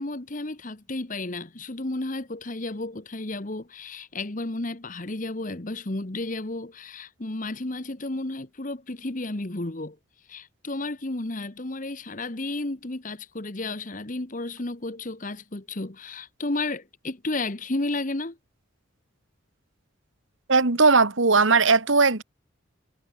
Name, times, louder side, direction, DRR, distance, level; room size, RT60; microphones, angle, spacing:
voice 1, 0.0-10.0 10.3-18.4, left 2 dB, 40° left, 1.2 m, -32 dB
voice 2, 20.5-22.2, right 4 dB, 70° right, 1.8 m, -18 dB
head